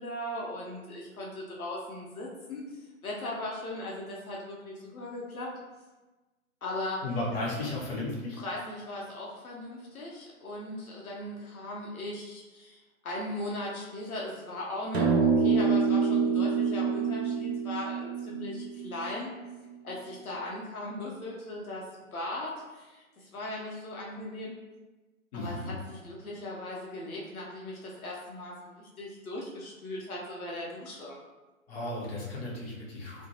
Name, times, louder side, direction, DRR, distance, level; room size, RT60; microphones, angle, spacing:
voice 1, 0.0-5.5 6.6-7.0 8.4-19.3 19.8-21.8 22.1-24.5 25.3-31.2, left 1 dB, 85° left, -4 dB, 0.7 m, -38 dB
voice 2, 7.0-8.4 25.3-25.7 31.7-33.3, left 2 dB, 45° left, -5 dB, 0.9 m, -34 dB
sound 1, 14.9-19.5, right 5 dB, 50° right, 0.4 m, -26 dB
2.4 x 2.1 x 2.7 m, 1.2 s
figure-of-eight pair, 125°, 42 cm